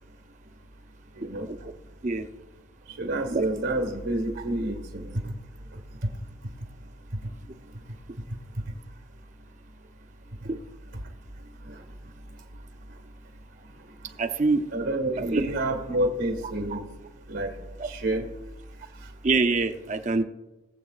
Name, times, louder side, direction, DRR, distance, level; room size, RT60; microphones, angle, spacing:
voice 1, 1.2-1.5 3.0-5.3 6.0-6.1 11.6-11.8 14.7-16.9 17.3-17.5 17.8-18.3, right 1 dB, 85° right, 3 dB, 1.5 m, -28 dB
voice 2, 14.2-14.6 15.2-15.4 16.7-16.8 17.8-17.9 19.2-20.2, right 3 dB, 40° right, 8 dB, 0.5 m, -25 dB
21.0 x 7.5 x 2.4 m, 1.0 s
head